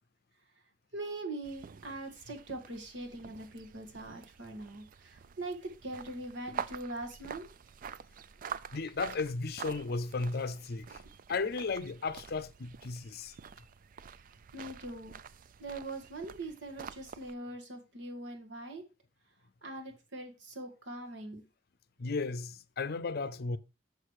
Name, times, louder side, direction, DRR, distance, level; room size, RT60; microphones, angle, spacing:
voice 1, 0.9-7.5 14.5-15.2 15.6-18.8 19.6-21.4, right 2 dB, 75° right, 1.8 m, -42 dB
sound 1, 1.4-17.3, right 7 dB, 50° right, 0.4 m, -47 dB
voice 2, 8.7-11.0 11.3-13.3 22.0-23.6, left 4 dB, 60° left, 0.6 m, -35 dB
6.5 x 6.4 x 4.7 m
head